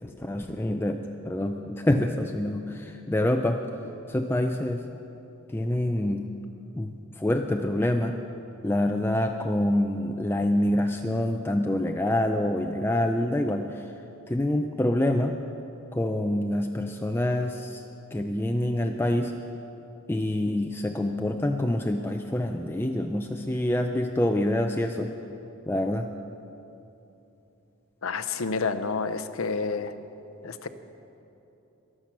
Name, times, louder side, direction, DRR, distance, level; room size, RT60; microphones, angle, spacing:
voice 1, 0.0-3.7 4.1-4.8 5.5-6.3 6.8-8.2 8.6-13.9 14.3-15.4 15.9-17.8 18.1-19.4 20.1-25.1 25.7-26.1, left 1 dB, 10° left, 4 dB, 0.4 m, -26 dB
voice 2, 28.0-29.9 30.4-30.7, left 4 dB, 75° left, 11 dB, 0.7 m, -29 dB
22.5 x 7.6 x 6.0 m, 2.9 s
head